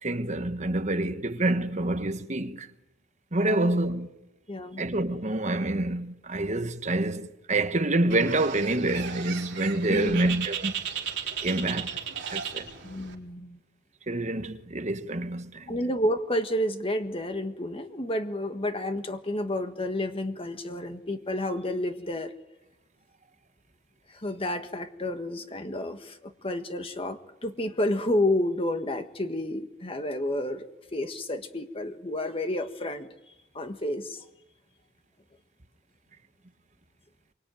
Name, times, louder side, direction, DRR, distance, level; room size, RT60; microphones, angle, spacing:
voice 1, 0.0-2.7 3.3-4.1 4.8-10.7 11.4-11.9 12.3-12.7 14.1-15.8, right 2 dB, 35° right, 1.3 m, -27 dB
voice 2, 4.5-4.8 9.9-10.3 11.5-11.6 12.8-13.6 15.7-22.3 24.1-30.7 30.9-33.1 33.5-34.2, left 1 dB, 30° left, 1.6 m, -30 dB
Bird, 8.1-13.1, right 8 dB, 60° right, 4.0 m, -35 dB
26.5 x 24.0 x 9.3 m
head